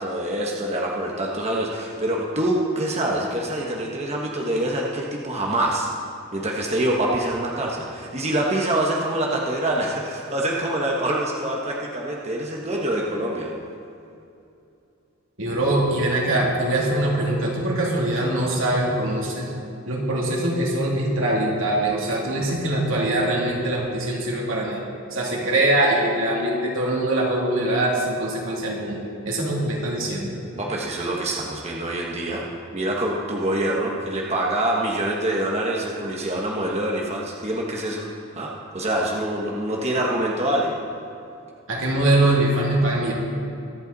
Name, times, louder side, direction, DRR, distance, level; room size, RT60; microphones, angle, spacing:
voice 1, 0.0-5.9 6.3-13.5 30.5-32.4 32.7-38.0 38.3-40.8, right 1 dB, 35° right, -2 dB, 1.2 m, -25 dB
voice 2, 15.4-19.5 19.9-24.8 25.1-29.0 29.2-30.3 41.7-43.1, right 1 dB, 80° right, -3 dB, 2.8 m, -22 dB
23.5 x 8.3 x 4.1 m, 2.7 s
head